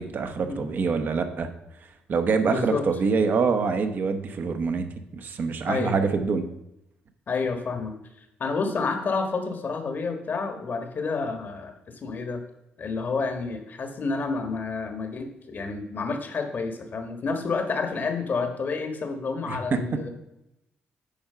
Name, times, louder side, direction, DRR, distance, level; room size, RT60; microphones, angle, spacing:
voice 1, 0.0-1.5 2.1-4.9 5.1-6.5 19.5-19.8, right 5 dB, 55° right, 7 dB, 1.1 m, -25 dB
voice 2, 2.5-2.8 5.7-5.9 7.3-12.4 12.8-20.1, left 4 dB, 50° left, 6 dB, 1.5 m, -29 dB
8.7 x 4.8 x 5.6 m, 0.87 s
cardioid pair, 70°, 4 cm